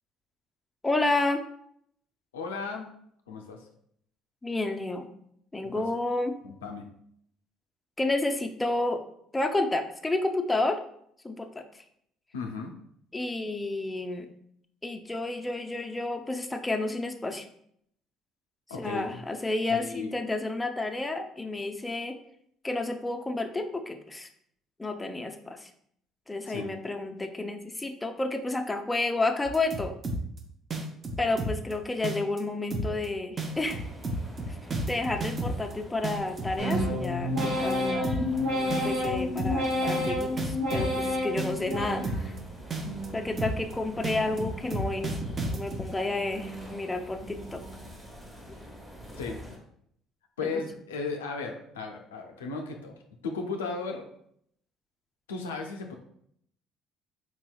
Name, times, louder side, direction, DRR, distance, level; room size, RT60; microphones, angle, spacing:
voice 1, 0.8-1.4 4.4-5.1 5.5-6.4 8.0-9.0 9.3-10.8 11.2-11.6 13.1-14.3 14.8-17.5 18.8-22.2 22.6-24.3 24.8-25.7 26.3-29.9 31.2-33.8 34.5-34.6 34.8-38.1 38.7-42.3 43.1-45.2 45.5-47.6, left 2 dB, 15° left, 5 dB, 0.4 m, -30 dB
voice 2, 2.3-2.9 3.3-3.7 5.6-5.8 6.4-6.9 12.3-12.8 18.7-19.2 19.7-20.2 26.5-26.7 49.1-49.4 50.4-52.9 53.2-54.1 55.3-55.9, left 4 dB, 90° left, 3 dB, 0.4 m, -35 dB
sound 1, 29.5-30.4 30.7-31.7 32.0-32.4 32.7-33.1 33.4-35.7 36.0-37.1 37.4-37.7 38.0-38.4 38.7-41.1 41.4-42.4 42.7-43.1 43.4-43.7 44.0-45.8, right 2 dB, 40° right, 0.6 m, -32 dB
sound 2, 33.5-49.6, equal, 25° right, 1.2 m, -46 dB
sound 3, 36.6-42.4 42.8-43.5 43.9-44.6 45.0-45.7 46.1-46.7 47.2-47.7, left 1 dB, 75° right, 1.1 m, -31 dB
4.2 x 2.8 x 2.3 m, 0.69 s
hypercardioid pair, 60°, 0 cm